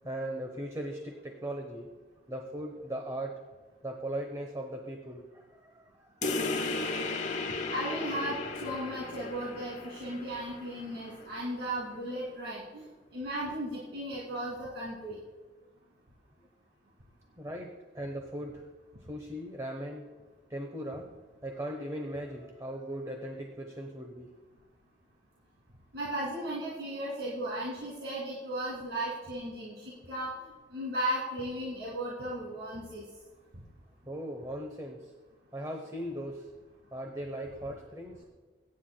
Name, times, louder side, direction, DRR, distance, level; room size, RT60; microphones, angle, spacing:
voice 1, 0.0-1.9 2.3-3.4 3.8-6.6 17.4-18.6 19.1-20.0 20.5-21.1 21.4-24.3 34.1-35.1 35.5-36.5 36.9-38.2, right 1 dB, 20° right, 2 dB, 0.9 m, -39 dB
sound 1, 6.2-11.3, left 3 dB, 40° left, 0.9 m, -35 dB
voice 2, 7.7-12.8 13.1-15.2 25.9-30.3 30.7-33.0, right 1 dB, 65° right, -7 dB, 2.4 m, -36 dB
23.0 x 9.6 x 2.2 m, 1.3 s
head